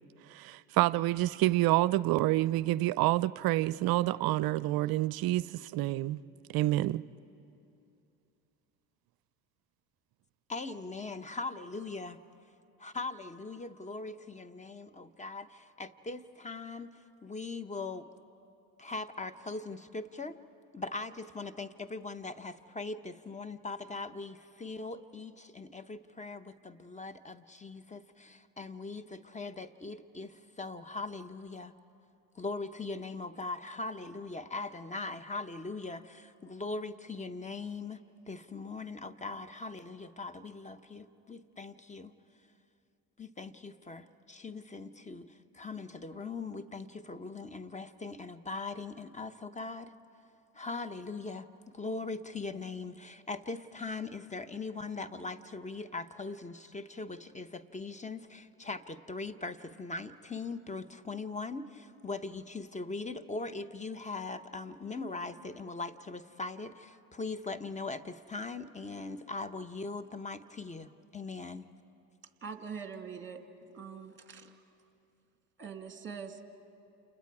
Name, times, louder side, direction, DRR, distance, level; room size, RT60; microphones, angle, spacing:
voice 1, 0.3-6.2 6.5-7.0, right 17 dB, 50° right, 18 dB, 0.6 m, -28 dB
voice 2, 10.5-12.2 12.8-18.1 18.8-20.4 20.7-31.7 32.3-38.0 38.3-42.1 43.2-49.9 50.5-71.7, left 3 dB, 15° left, 12 dB, 0.9 m, -40 dB
voice 3, 72.4-73.4 73.7-74.6 75.6-76.6, right 6 dB, 25° right, 5 dB, 2.5 m, -43 dB
29.5 x 28.5 x 4.8 m, 2.7 s
hypercardioid pair, 75°, 46 cm